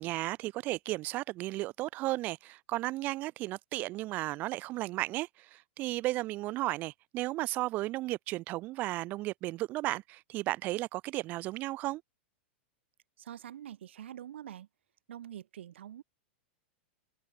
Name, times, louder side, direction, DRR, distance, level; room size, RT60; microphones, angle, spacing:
voice 1, 0.0-12.0, right 18 dB, 30° right, 0.5 m, -34 dB
voice 2, 13.2-14.7 15.1-16.0, right 11 dB, 85° right, 2.4 m, -45 dB
supercardioid pair, 160°, 6 cm